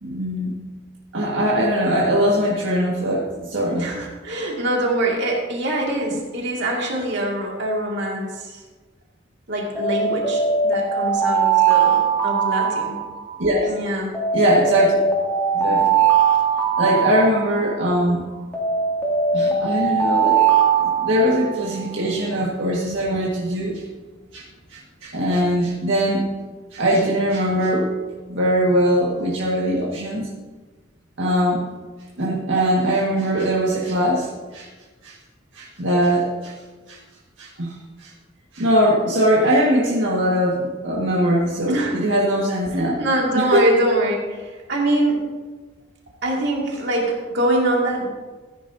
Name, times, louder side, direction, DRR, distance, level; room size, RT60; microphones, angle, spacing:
voice 1, 0.0-0.5 1.1-3.9 13.4-13.7 14.3-15.0 15.5-15.9 16.8-18.2 19.3-20.5 20.8-23.8 24.3-24.4 24.7-26.2 26.7-27.9 28.3-30.3 31.2-31.7 32.2-34.7 35.0-35.1 35.5-36.5 36.9-37.0 37.4-38.1 38.5-43.0 43.3-43.7, equal, 80° right, -5 dB, 1.7 m, -21 dB
voice 2, 3.8-8.6 9.5-13.0 13.7-14.1 41.6-42.0 43.0-45.3 46.2-48.1, right 1 dB, 65° right, -2 dB, 2.2 m, -24 dB
Alarm, 9.7-13.5 14.1-17.8 18.5-21.7, right 6 dB, 10° left, 2.4 m, -20 dB
14.5 x 9.8 x 2.7 m, 1.3 s
head